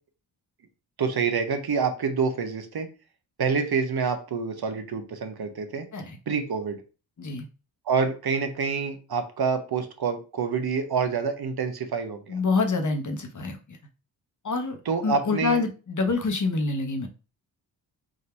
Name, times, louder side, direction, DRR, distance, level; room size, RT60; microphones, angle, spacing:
voice 1, 1.0-2.9 3.4-5.9 6.3-6.8 7.9-12.4 14.9-15.6, right 5 dB, 55° right, 7 dB, 1.0 m, -27 dB
voice 2, 12.3-13.8 14.4-14.8 15.0-17.1, left 3 dB, 40° left, 5 dB, 1.0 m, -26 dB
3.8 x 2.7 x 4.4 m, 0.33 s
cardioid pair, 70°, 45 cm